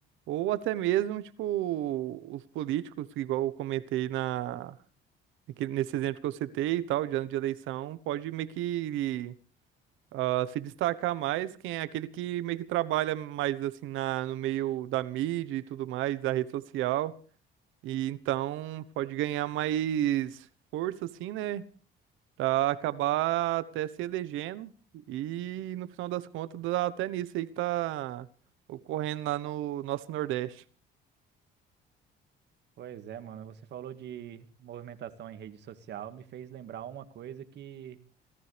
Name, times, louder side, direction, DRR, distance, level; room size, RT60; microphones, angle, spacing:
voice 1, 0.3-4.8 5.6-9.3 10.1-17.1 17.8-20.5 20.7-21.6 22.4-24.7 25.1-28.3 28.7-30.6, right 14 dB, 85° right, 15 dB, 1.1 m, -31 dB
voice 2, 32.8-38.0, right 10 dB, 60° right, 9 dB, 1.9 m, -43 dB
27.5 x 14.0 x 3.4 m, 0.39 s
cardioid pair, 120°, 20 cm